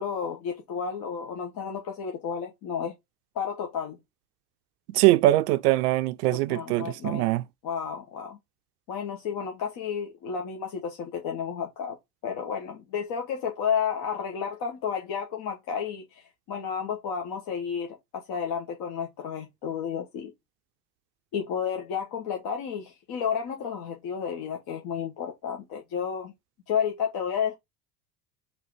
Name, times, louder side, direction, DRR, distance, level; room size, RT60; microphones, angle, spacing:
voice 1, 0.0-2.9 3.3-4.0 6.3-7.3 7.6-8.4 8.9-12.0 12.2-20.3 21.3-26.3 26.7-27.5, left 7 dB, 45° left, 1.1 m, -32 dB
voice 2, 4.9-7.4, right 16 dB, 65° right, 0.5 m, -22 dB
4.0 x 2.7 x 4.6 m
figure-of-eight pair, 70°, 50 cm